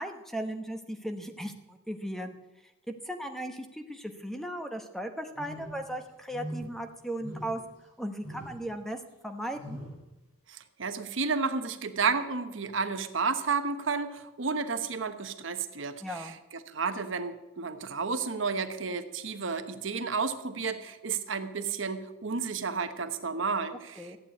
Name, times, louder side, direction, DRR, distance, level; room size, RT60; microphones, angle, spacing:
voice 1, 0.0-2.3 2.9-7.6 8.0-9.0 9.2-9.8 16.0-16.3 24.0-24.2, right 1 dB, ahead, 6 dB, 1.0 m, -37 dB
sound 1, 5.3-5.9 6.3-6.8 7.2-7.7 8.2-8.6 9.5-10.0, equal, 70° left, 6.7 m, -41 dB
voice 2, 10.5-16.4 16.7-24.2, right 5 dB, 65° right, 9 dB, 1.1 m, -32 dB
14.5 x 8.8 x 8.4 m, 1.0 s
head